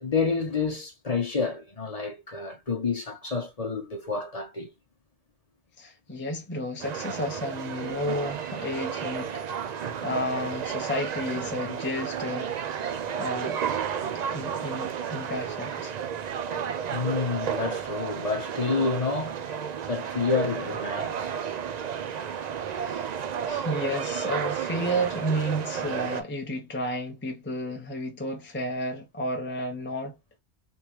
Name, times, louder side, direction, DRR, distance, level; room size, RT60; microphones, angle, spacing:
voice 1, 0.0-4.7 16.9-19.4 19.9-21.3, left 4 dB, 35° left, 1.0 m, -29 dB
voice 2, 5.8-9.5 10.0-12.6 13.2-13.6 14.1-15.9 22.8-30.2, equal, 10° left, 0.6 m, -32 dB
sound 1, 6.8-26.2, right 8 dB, 50° right, 0.5 m, -32 dB
3.5 x 3.2 x 3.0 m
omnidirectional pair, 1.1 m